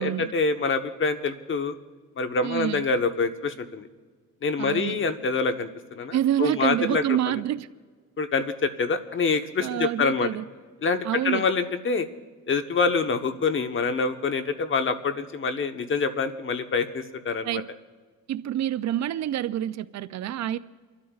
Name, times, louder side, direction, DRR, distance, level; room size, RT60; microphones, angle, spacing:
voice 1, 0.0-1.7 2.2-3.9 4.4-7.4 8.2-10.3 10.8-12.1 12.5-17.6, left 4 dB, 40° left, 1.1 m, -26 dB
voice 2, 2.4-2.9 4.6-5.0 6.1-7.7 9.6-10.4 11.0-11.5 17.4-17.7 18.3-20.6, right 11 dB, 65° right, 0.5 m, -27 dB
29.5 x 12.5 x 2.4 m
cardioid pair, 90°, 30 cm